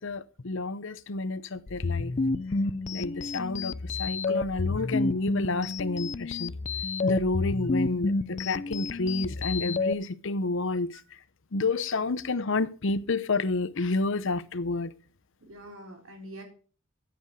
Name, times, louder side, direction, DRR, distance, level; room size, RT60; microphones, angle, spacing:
voice 1, 0.0-2.1 2.9-6.5 7.0-11.0 11.5-14.9, left 3 dB, 65° left, 0.8 m, -30 dB
sound 1, 1.7-9.9, left 3 dB, 35° left, 0.5 m, -30 dB
voice 2, 15.4-16.4, right 1 dB, 80° right, 3.9 m, -45 dB
14.5 x 8.2 x 4.7 m
head